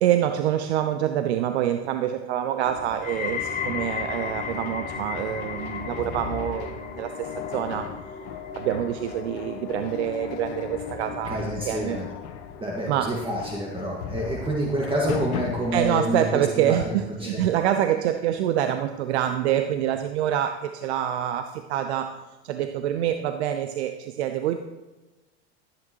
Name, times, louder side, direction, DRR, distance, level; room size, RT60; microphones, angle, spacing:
voice 1, 0.0-7.9 8.5-12.0 12.9-13.2 15.7-22.1 22.4-24.6, right 10 dB, 75° right, 8 dB, 0.6 m, -26 dB
sound 1, 2.6-15.8, left 8 dB, 60° left, 1.1 m, -37 dB
sound 2, 3.0-14.1 14.5-15.0 15.7-15.8, left 6 dB, 25° left, 1.1 m, -37 dB
voice 2, 11.3-12.1 12.6-17.0 17.2-17.4, equal, 15° right, -2 dB, 1.8 m, -28 dB
14.0 x 8.7 x 3.0 m, 1.1 s
hypercardioid pair, 80°, 33 cm